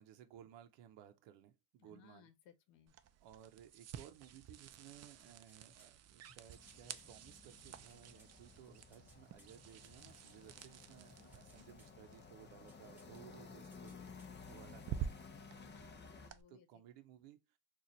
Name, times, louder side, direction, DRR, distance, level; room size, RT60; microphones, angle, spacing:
voice 1, 0.0-2.3 3.2-14.0 14.5-15.2 16.5-17.6, right 10 dB, 75° right, 0.7 m, -59 dB
voice 2, 1.8-2.9 15.5-16.7, left 9 dB, 75° left, 1.0 m, -65 dB
sound 1, 2.9-16.4, right 9 dB, 35° right, 0.4 m, -51 dB
sound 2, 5.2-7.1 7.6-10.8 11.1-12.0 12.4-13.2 13.4-14.4 14.7-14.8, equal, 5° right, 1.5 m, -67 dB
sound 3, 6.4-16.3, left 5 dB, 25° left, 0.7 m, -56 dB
4.0 x 2.5 x 2.9 m
cardioid pair, 110°, 45 cm